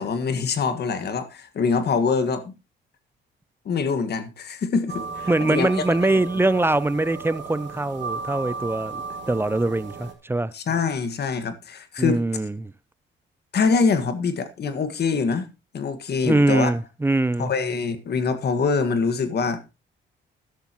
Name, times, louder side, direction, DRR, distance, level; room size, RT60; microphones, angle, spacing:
voice 1, 0.0-2.5 3.6-5.8 10.5-12.2 13.5-15.5 15.7-16.7 17.4-19.6, left 5 dB, 55° left, 1.7 m, -24 dB
sound 1, 4.9-10.1, right 4 dB, 65° right, 2.9 m, -35 dB
voice 2, 5.3-9.0 9.3-10.5 12.0-12.7 16.3-17.5, right 2 dB, 10° right, 0.5 m, -22 dB
13.0 x 11.5 x 3.0 m
cardioid pair, 90°, 20 cm